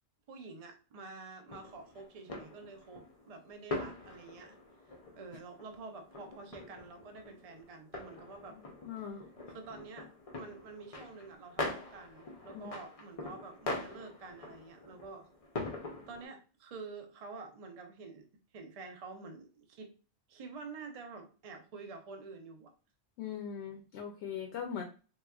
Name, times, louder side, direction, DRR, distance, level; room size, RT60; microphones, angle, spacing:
voice 1, 0.3-4.6 5.1-8.6 9.5-15.3 16.1-18.3 18.5-19.9 20.3-22.7, right 4 dB, 45° right, 5 dB, 0.5 m, -48 dB
sound 1, 1.5-16.3, left 2 dB, 40° left, 0.5 m, -43 dB
voice 2, 8.8-9.2 12.5-12.7 23.2-24.8, left 8 dB, 70° left, 4 dB, 0.8 m, -40 dB
3.2 x 3.0 x 2.3 m, 0.35 s
omnidirectional pair, 1.3 m